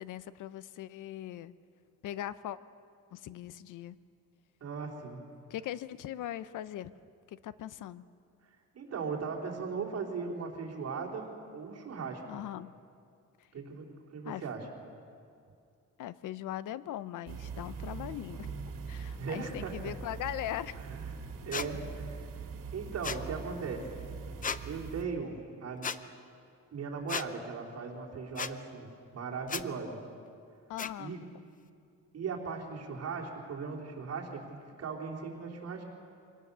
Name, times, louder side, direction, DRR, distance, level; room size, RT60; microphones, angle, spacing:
voice 1, 0.0-1.5 2.0-2.6 3.1-4.0 5.5-6.9 7.3-8.0 12.3-12.7 13.4-13.5 14.2-14.4 16.0-18.6 18.9-20.8 30.7-31.3, left 12 dB, 75° left, 16 dB, 0.7 m, -40 dB
voice 2, 4.6-5.2 8.4-11.3 11.5-12.2 13.5-14.7 19.2-19.9 20.9-21.2 21.4-22.5 22.7-24.0 24.6-25.9 26.7-30.0 31.0-31.2 32.1-35.8, right 5 dB, 55° right, -2 dB, 3.6 m, -38 dB
sound 1, 17.3-25.0, right 5 dB, 85° right, 2.3 m, -42 dB
sound 2, 21.5-21.7 23.0-23.2 24.4-24.6 25.8-26.0 27.1-27.3 28.4-28.5 29.5-29.6 30.8-30.9, left 6 dB, 25° left, 0.6 m, -34 dB
25.0 x 18.0 x 6.8 m, 2.4 s
cardioid pair, 140°, 31 cm